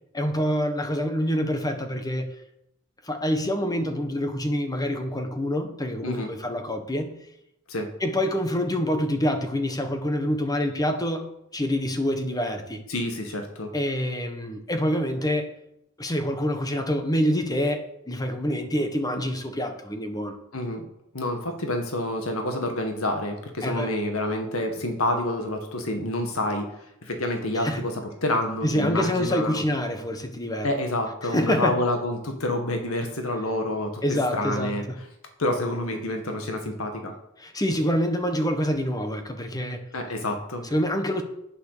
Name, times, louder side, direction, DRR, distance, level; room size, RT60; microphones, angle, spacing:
voice 1, 0.1-2.3 3.0-7.1 8.0-12.8 13.7-15.5 16.0-20.4 23.6-23.9 27.5-27.8 28.6-30.7 31.3-31.8 34.0-35.0 37.4-39.8 40.7-41.2, equal, 20° left, 6 dB, 1.3 m, -26 dB
voice 2, 12.9-13.7 20.5-20.9 21.1-26.7 27.0-27.9 28.2-29.6 30.6-34.0 34.3-34.9 35.4-37.1 39.9-40.6, left 1 dB, 80° left, 4 dB, 1.7 m, -28 dB
10.5 x 9.1 x 6.7 m, 0.82 s
head